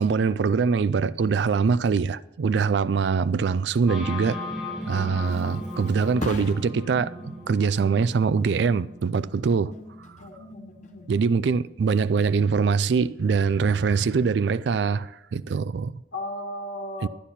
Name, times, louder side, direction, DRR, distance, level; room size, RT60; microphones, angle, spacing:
voice 1, 0.0-4.4 4.9-9.7 11.1-16.0 17.0-17.1, right 5 dB, 70° right, 0.3 m, -23 dB
sound 1, 3.9-13.5, left 1 dB, 5° right, 2.2 m, -38 dB
Thump thud, 4.6-12.1 12.5-12.9, left 2 dB, 40° left, 1.0 m, -42 dB
voice 2, 10.2-11.1 16.1-17.1, left 1 dB, 90° left, 1.4 m, -36 dB
11.5 x 10.0 x 4.2 m
head